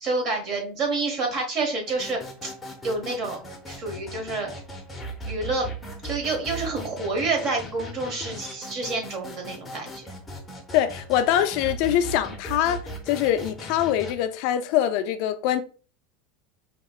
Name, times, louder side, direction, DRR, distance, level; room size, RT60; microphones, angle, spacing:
voice 1, 0.0-2.5 2.8-3.4 3.7-4.5 5.2-5.7 6.0-10.0, right 3 dB, 35° right, 1.2 m, -28 dB
sound 1, 1.9-14.1, right 1 dB, 10° left, 0.7 m, -38 dB
voice 2, 10.7-15.6, left 11 dB, 50° left, 0.3 m, -24 dB
5.1 x 2.9 x 2.4 m
supercardioid pair, 165°, 0 cm